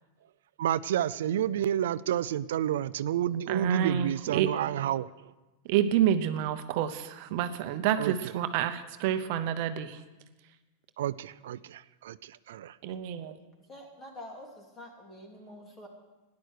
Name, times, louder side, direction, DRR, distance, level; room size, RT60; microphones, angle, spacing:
voice 1, 0.6-5.1 8.0-8.1 11.0-11.1 11.4-12.7, right 11 dB, 85° right, 0.4 m, -29 dB
voice 2, 3.5-4.5 5.6-10.0 12.8-13.4, right 10 dB, 55° right, 0.8 m, -28 dB
voice 3, 13.7-15.9, left 1 dB, 20° left, 3.0 m, -46 dB
13.5 x 10.5 x 6.5 m
supercardioid pair, 140°, 0 cm